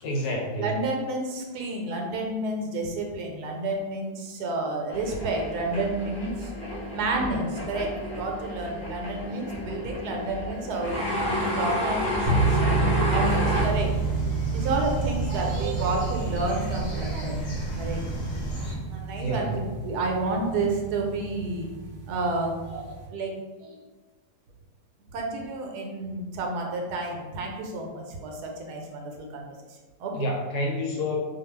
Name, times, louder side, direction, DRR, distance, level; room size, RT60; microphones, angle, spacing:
voice 1, 0.0-0.7 19.2-19.6 30.1-31.2, left 1 dB, 80° left, 0 dB, 1.1 m, -28 dB
voice 2, 0.6-6.5 6.9-13.9 14.2-17.5 17.8-18.0 18.9-21.7 22.1-23.3 23.6-23.8 25.1-30.3, right 2 dB, 80° right, 1 dB, 1.1 m, -30 dB
sound 1, 4.9-13.7, left 1 dB, 40° left, 0.8 m, -30 dB
sound 2, 12.3-23.1, right 4 dB, 65° right, 0.7 m, -30 dB
sound 3, 13.5-18.7, equal, 60° left, 0.4 m, -33 dB
2.5 x 2.3 x 3.0 m, 1.3 s
omnidirectional pair, 1.7 m